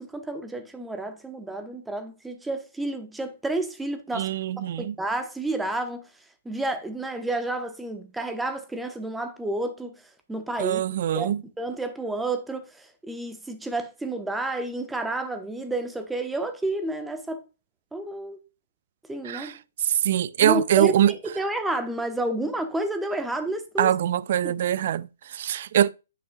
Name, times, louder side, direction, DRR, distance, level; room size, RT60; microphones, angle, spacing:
voice 1, 0.0-4.3 4.8-6.1 6.4-9.9 10.3-10.8 11.1-17.4 17.9-18.4 19.1-19.5 20.4-23.9 24.4-24.5, right 2 dB, 5° right, 1.0 m, -30 dB
voice 2, 4.1-5.0 10.6-11.4 19.2-19.5 19.8-21.1 23.8-25.9, right 11 dB, 55° right, 0.4 m, -23 dB
9.7 x 5.4 x 2.4 m
figure-of-eight pair, 125°, 0 cm